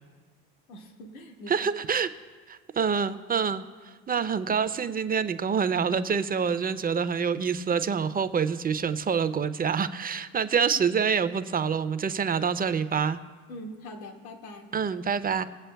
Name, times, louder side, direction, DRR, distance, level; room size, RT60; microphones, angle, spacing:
voice 1, 0.7-1.5 13.5-14.7, left 1 dB, 85° left, 3 dB, 1.4 m, -42 dB
voice 2, 1.5-2.1 2.5-13.2 14.7-15.4, right 6 dB, 20° right, 12 dB, 0.5 m, -26 dB
22.0 x 7.7 x 2.3 m, 1.5 s
hypercardioid pair, 75°, 42 cm